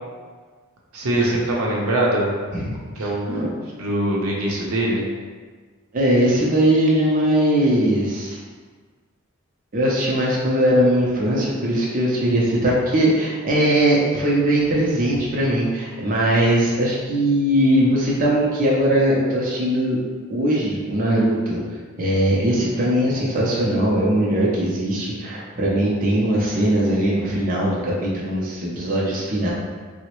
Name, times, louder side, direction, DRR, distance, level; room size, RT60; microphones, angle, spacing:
voice 1, 0.9-2.3 2.8-3.2 3.8-5.1, right 1 dB, 85° right, -2 dB, 0.6 m, -22 dB
voice 2, 2.5-3.5 5.9-8.4 9.7-20.0 20.3-21.6 22.0-29.5, right 1 dB, 40° right, -4 dB, 0.5 m, -20 dB
3.7 x 2.0 x 2.9 m, 1.5 s
head